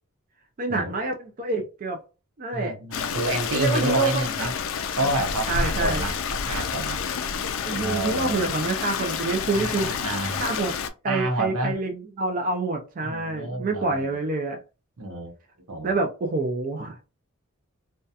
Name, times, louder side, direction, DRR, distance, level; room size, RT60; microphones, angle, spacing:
voice 1, 0.6-2.0 2.4-2.8 3.5-4.5 5.5-6.1 7.6-10.0 10.4-10.7 11.0-14.6 15.8-17.1, right 3 dB, 40° right, 0.4 m, -27 dB
voice 2, 2.5-4.5 5.0-7.0 7.7-8.5 9.5-10.4 11.1-11.8 13.0-14.0 15.0-15.3 15.7-16.0, right 1 dB, 90° right, 0.7 m, -29 dB
Stream, 2.9-10.9, left 6 dB, 65° left, 0.3 m, -29 dB
2.7 x 2.2 x 2.3 m
head